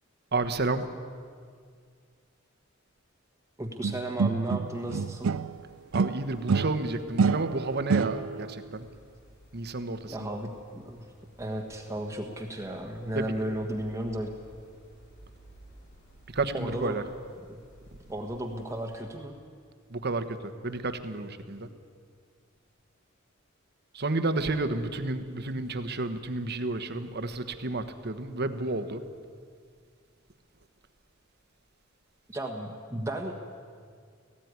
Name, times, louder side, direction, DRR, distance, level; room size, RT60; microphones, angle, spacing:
voice 1, 0.3-0.9 5.9-8.9 9.5-10.1 13.1-13.3 16.3-17.0 19.9-20.3 20.6-21.7 23.9-29.0, right 2 dB, 55° right, 9 dB, 1.3 m, -31 dB
voice 2, 3.6-5.3 10.1-11.1 11.4-14.3 16.5-17.0 17.5-17.6 18.1-19.3 25.6-25.7 32.3-33.3, right 1 dB, 15° right, 2 dB, 1.4 m, -34 dB
sound 1, 3.8-5.6 5.9-8.5, right 5 dB, 70° right, 0.4 m, -28 dB
sound 2, 4.6-19.0, right 1 dB, 60° left, 7.8 m, -56 dB
18.5 x 15.5 x 9.6 m, 2.1 s
head